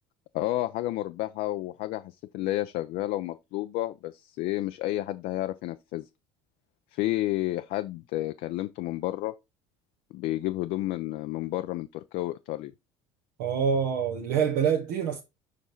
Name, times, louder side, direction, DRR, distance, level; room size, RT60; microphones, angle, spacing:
voice 1, 0.3-6.1 6.9-9.3 10.1-12.7, left 16 dB, 60° left, 0.5 m, -31 dB
voice 2, 13.4-15.2, right 7 dB, 70° right, 1.1 m, -26 dB
5.4 x 4.9 x 4.4 m
hypercardioid pair, 70°, 16 cm